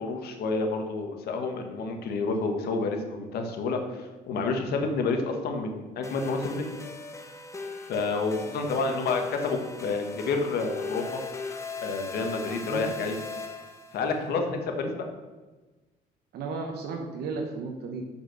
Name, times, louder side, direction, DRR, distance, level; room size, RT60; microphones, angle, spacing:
voice 1, 0.0-6.7 7.9-11.2 11.8-13.2 13.9-14.9, left 3 dB, 70° left, 4 dB, 1.5 m, -29 dB
sound 1, 6.0-14.1, left 3 dB, 15° left, 1.0 m, -39 dB
voice 2, 8.7-9.1 12.4-12.8 16.3-18.0, right 4 dB, 70° right, 2 dB, 1.2 m, -35 dB
6.7 x 5.8 x 6.5 m, 1.2 s
cardioid pair, 110°, 17 cm